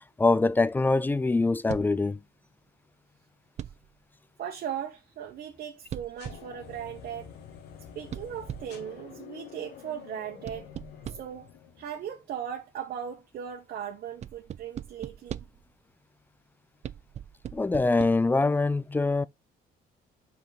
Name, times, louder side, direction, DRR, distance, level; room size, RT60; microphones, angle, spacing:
voice 1, 0.2-2.2 17.5-19.2, left 3 dB, 10° left, 0.5 m, -24 dB
sound 1, 1.7-2.0 3.6-4.0 5.9-6.6 8.1-8.9 10.4-11.4 14.2-15.7 16.8-18.1, right 10 dB, 40° right, 0.5 m, -40 dB
voice 2, 4.4-7.3 7.9-10.7 11.1-11.5 11.8-15.5, right 9 dB, 60° right, 1.5 m, -38 dB
sound 2, 6.2-12.1, left 9 dB, 80° left, 2.0 m, -48 dB
7.6 x 5.9 x 3.5 m
cardioid pair, 110°, 17 cm